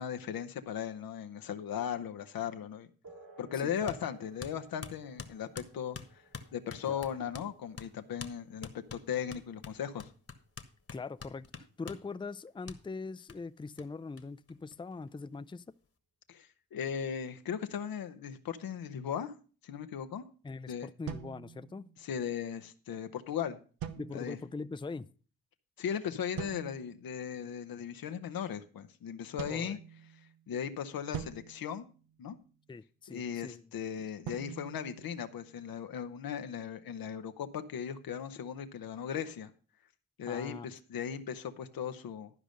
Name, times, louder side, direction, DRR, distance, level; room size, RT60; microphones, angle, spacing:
voice 1, 0.0-2.9 3.4-6.0 6.5-10.1 16.3-19.3 19.6-20.2 20.7-20.9 22.0-23.6 24.1-24.4 25.8-29.8 30.5-31.9 32.2-32.4 33.1-39.5 40.2-42.3, left 8 dB, 80° left, 0.9 m, -37 dB
sound 1, 3.0-11.1, right 3 dB, 65° right, 3.7 m, -60 dB
voice 2, 3.5-3.9 6.9-7.0 10.9-15.7 20.4-21.9 24.0-25.1 29.5-29.8 32.7-33.6 33.9-34.0 40.3-40.7, left 4 dB, 15° left, 0.5 m, -42 dB
sound 2, 3.9-4.0 4.4-7.5 7.8-7.9 8.2-8.4 8.6-12.1 12.7-12.8 13.3-13.4 13.8-13.9 14.2-14.3 14.5-15.2, left 5 dB, 40° left, 1.4 m, -45 dB
sound 3, 21.1-22.1 23.8-24.6 26.4-27.0 29.4-30.4 31.1-32.6 34.2-35.8, right 9 dB, 90° right, 0.8 m, -45 dB
12.5 x 5.0 x 6.6 m
supercardioid pair, 40°, 35 cm